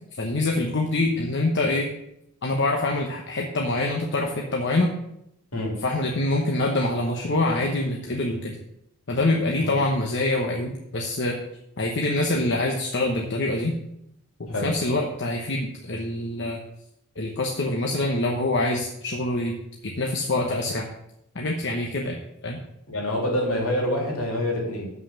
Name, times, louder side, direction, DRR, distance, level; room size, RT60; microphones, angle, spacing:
voice 1, 0.1-1.9 2.4-4.9 5.8-8.5 9.1-11.4 11.8-13.7 14.6-16.6 17.2-19.5 19.8-20.9 21.3-22.6, left 2 dB, 55° left, 0 dB, 1.0 m, -25 dB
voice 2, 22.9-24.9, left 1 dB, 70° left, -1 dB, 3.0 m, -26 dB
7.5 x 6.1 x 7.0 m, 0.79 s
head